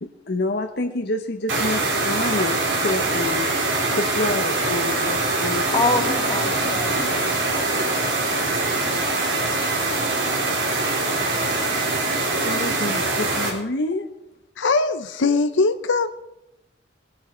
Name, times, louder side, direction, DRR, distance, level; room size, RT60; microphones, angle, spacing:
voice 1, 0.0-3.5 3.9-5.8 6.9-7.2 12.4-14.1, left 2 dB, 60° left, 4 dB, 0.9 m, -28 dB
sound 1, 1.5-13.5, right 2 dB, 90° right, 3.6 m, -23 dB
voice 2, 5.7-7.1 7.5-8.5, left 2 dB, 25° left, 2 dB, 2.0 m, -27 dB
voice 3, 14.6-16.1, left 3 dB, 90° left, 9 dB, 0.7 m, -21 dB
20.0 x 8.9 x 4.4 m, 0.86 s
head